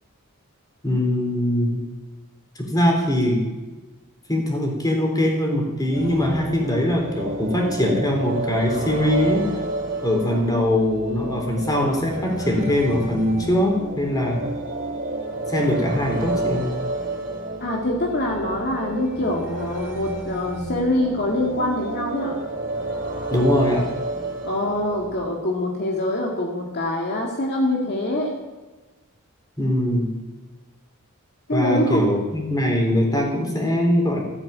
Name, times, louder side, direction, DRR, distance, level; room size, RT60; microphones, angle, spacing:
voice 1, 0.8-1.8 2.6-3.5 4.3-9.5 10.0-14.4 15.5-16.7 23.3-23.9 29.6-30.1 31.5-34.2, left 1 dB, 15° left, 0 dB, 3.8 m, -22 dB
Blade Runner Type Ambient, 5.9-25.3, right 2 dB, 40° right, 5.0 m, -30 dB
voice 2, 17.6-22.4 24.4-28.4 31.5-32.1, left 1 dB, 50° left, -1 dB, 2.3 m, -24 dB
16.0 x 9.0 x 8.8 m, 1.2 s
head